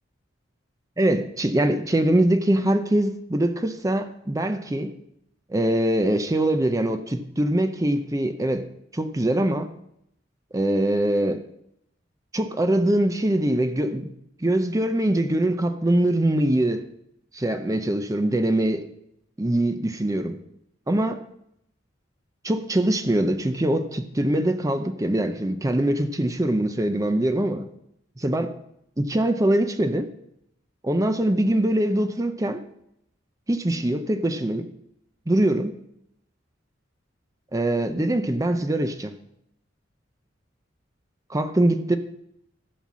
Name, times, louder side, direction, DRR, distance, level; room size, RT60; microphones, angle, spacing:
voice 1, 1.0-4.9 5.5-8.7 8.9-9.7 10.5-11.4 12.3-14.1 14.4-16.9 17.3-18.9 19.4-20.4 20.9-21.2 22.4-27.7 28.2-28.5 29.0-30.1 30.8-32.6 33.5-34.7 35.3-35.8 37.5-39.1 41.3-42.0, right 1 dB, 15° right, 0.6 m, -23 dB
14.5 x 5.8 x 6.1 m
head